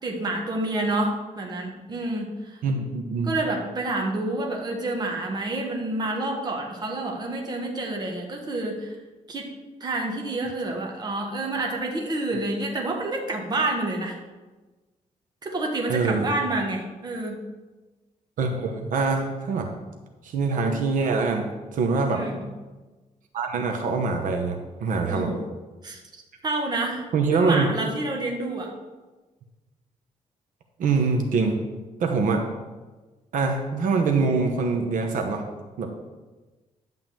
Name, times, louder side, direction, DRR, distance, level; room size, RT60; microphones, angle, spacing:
voice 1, 0.0-2.6 3.2-8.9 9.3-9.5 9.8-14.2 15.4-17.4 22.1-22.5 25.1-25.5 25.8-27.0 27.3-28.7, right 2 dB, 30° right, 1 dB, 1.4 m, -28 dB
voice 2, 2.6-3.3 15.9-16.3 18.4-19.7 20.2-22.2 23.3-25.3 27.1-27.7 30.8-31.6 32.0-32.5 33.3-35.4 35.8-35.9, right 4 dB, 70° right, 3 dB, 1.1 m, -24 dB
11.0 x 3.8 x 7.5 m, 1.2 s
wide cardioid pair, 160°, 14 cm